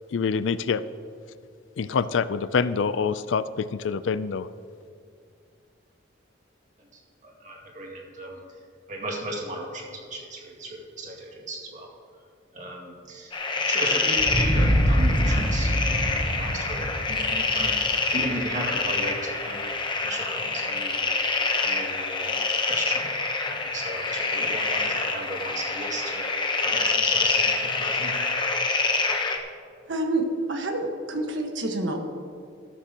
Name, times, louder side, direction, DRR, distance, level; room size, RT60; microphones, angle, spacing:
voice 1, 0.1-0.8 1.8-4.5, left 5 dB, 85° left, 15 dB, 0.4 m, -26 dB
voice 2, 6.8-8.4 8.9-11.9 12.5-13.3 13.7-17.8 18.1-19.6 20.0-21.0 21.6-22.4 22.6-23.1 23.4-26.2 26.6-28.1, right 1 dB, 40° right, -1 dB, 2.1 m, -36 dB
sound 1, 13.3-29.4, left 3 dB, 25° left, 0.9 m, -26 dB
sound 2, 14.2-18.8, equal, 25° right, 1.2 m, -25 dB
voice 3, 29.9-32.0, right 2 dB, 75° right, 3 dB, 1.4 m, -28 dB
13.5 x 12.5 x 2.9 m, 2.4 s
head